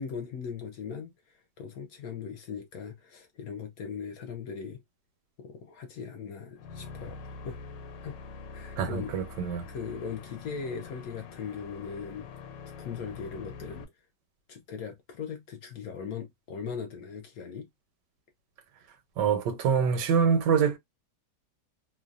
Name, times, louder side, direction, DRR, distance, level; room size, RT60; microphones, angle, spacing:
voice 1, 0.0-4.8 5.4-7.6 8.0-8.2 8.5-9.1 9.7-12.3 12.8-13.9 14.5-17.7, left 6 dB, 70° left, 0.9 m, -39 dB
sound 1, 6.6-13.8, left 4 dB, 90° left, 1.3 m, -45 dB
voice 2, 8.8-9.7 19.2-20.8, right 6 dB, 75° right, 1.3 m, -25 dB
3.1 x 2.2 x 2.4 m
omnidirectional pair, 1.9 m